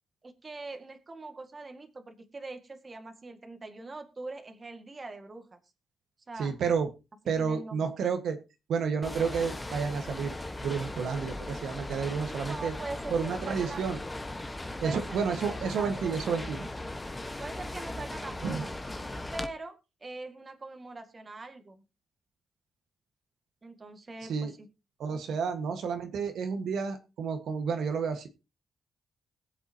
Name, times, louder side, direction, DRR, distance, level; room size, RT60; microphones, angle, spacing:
voice 1, 0.2-5.6 6.3-6.5 7.4-7.9 12.2-13.8 14.8-16.4 17.4-18.7 19.3-21.8 23.6-24.5, right 2 dB, 30° right, 6 dB, 1.9 m, -42 dB
voice 2, 6.4-6.9 7.3-8.4 8.7-10.3 10.6-12.7 13.1-14.0 14.8-16.7 18.4-18.7 24.3-24.5 25.0-28.3, right 6 dB, 80° right, 6 dB, 1.6 m, -30 dB
sound 1, 9.0-19.5, left 1 dB, 15° left, 1.3 m, -38 dB
21.0 x 8.0 x 2.9 m, 0.29 s
cardioid pair, 110°, 0 cm